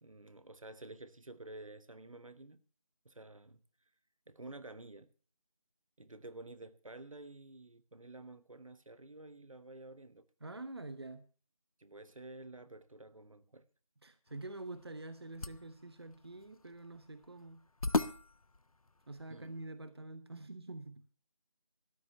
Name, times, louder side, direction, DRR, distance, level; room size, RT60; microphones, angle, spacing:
voice 1, 0.0-2.6 3.0-3.6 4.3-5.1 6.0-10.2 11.8-13.6 19.3-19.5, right 2 dB, 65° right, 1.1 m, -51 dB
voice 2, 10.4-11.2 14.0-17.7 19.1-21.0, right 2 dB, 45° right, 0.9 m, -46 dB
sound 1, 14.3-19.7, left 2 dB, 75° left, 0.8 m, -40 dB
13.0 x 9.7 x 5.6 m
figure-of-eight pair, 170°, 18 cm